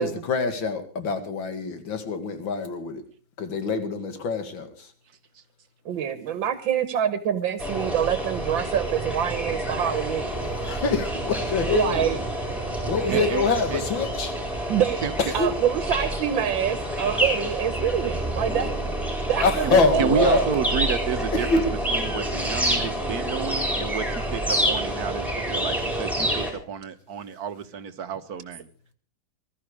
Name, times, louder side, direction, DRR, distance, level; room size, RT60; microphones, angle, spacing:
voice 1, 0.0-3.0 3.4-4.7 10.6-11.9 12.9-14.3 15.2-15.5 19.4-20.4 21.3-21.6, left 4 dB, 90° left, 8 dB, 2.7 m, -25 dB
voice 2, 5.8-10.5 11.7-12.2 13.0-13.4 14.7-15.1 15.3-18.7 19.3-20.4, right 9 dB, 85° right, 12 dB, 1.8 m, -26 dB
sound 1, 7.6-26.5, right 1 dB, ahead, 4.6 m, -28 dB
voice 3, 13.1-13.4 13.7-13.8 15.0-15.1 19.6-21.6 21.9-28.7, right 7 dB, 55° right, 11 dB, 1.5 m, -30 dB
20.5 x 13.0 x 4.8 m, 0.40 s
omnidirectional pair, 2.0 m